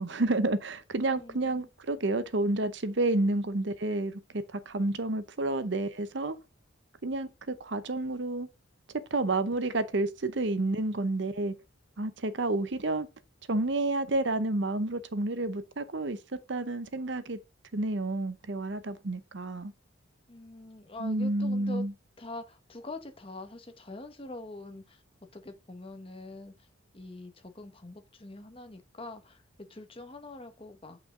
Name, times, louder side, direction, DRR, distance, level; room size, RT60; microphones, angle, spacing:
voice 1, 0.0-6.4 7.0-8.5 9.1-11.5 12.0-13.1 13.5-17.4 17.7-19.7 21.0-21.9, right 2 dB, 60° right, 0.8 m, -30 dB
voice 2, 1.1-1.7 20.3-21.8 22.2-25.0 25.3-26.7 26.9-31.0, left 2 dB, 25° left, 1.1 m, -44 dB
8.7 x 5.5 x 3.8 m
head